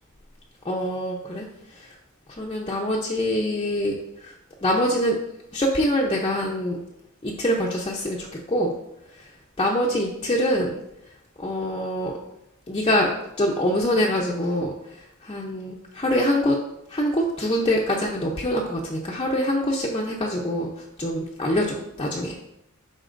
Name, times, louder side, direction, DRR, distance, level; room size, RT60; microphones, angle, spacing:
voice 1, 0.6-1.5 1.8-1.9 2.3-4.3 4.6-5.2 5.5-6.8 7.2-8.7 9.6-10.8 11.4-12.1 12.7-14.7 15.2-16.6 16.9-20.7 21.0-22.4, equal, 25° left, -3 dB, 0.7 m, -24 dB
11.5 x 4.1 x 2.6 m, 0.81 s
head